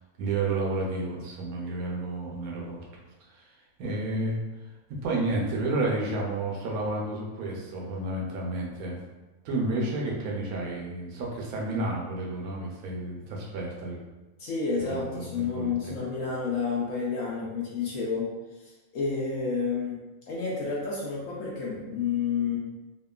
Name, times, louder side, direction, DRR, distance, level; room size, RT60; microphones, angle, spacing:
voice 1, 0.2-2.8 3.3-3.5 3.8-4.4 4.9-9.0 9.4-14.0 14.9-15.9, right 2 dB, 75° right, -2 dB, 1.0 m, -31 dB
voice 2, 14.4-18.3 18.6-22.6, left 5 dB, 70° left, -4 dB, 0.8 m, -30 dB
2.8 x 2.3 x 2.2 m, 1.1 s
omnidirectional pair, 1.7 m